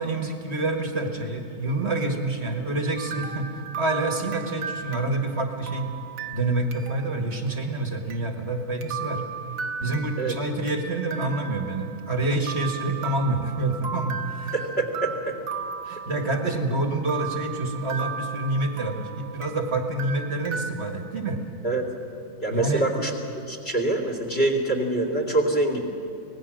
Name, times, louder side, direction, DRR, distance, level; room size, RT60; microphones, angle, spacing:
voice 1, 0.0-5.9 6.3-9.2 9.8-14.5 15.8-21.4 22.5-22.9, right 2 dB, 35° right, 3 dB, 1.8 m, -27 dB
sound 1, 3.0-7.2 7.5-7.6 8.1-8.2 8.8-10.8 11.1-12.1 12.5-16.7 17.1-19.6 20.0-20.7, right 6 dB, 50° right, 1.3 m, -36 dB
voice 2, 14.5-15.4 21.6-21.9 22.4-23.1 23.5-25.9, right 2 dB, 30° left, 3 dB, 2.7 m, -25 dB
25.0 x 19.0 x 6.3 m, 2.5 s
omnidirectional pair, 2.1 m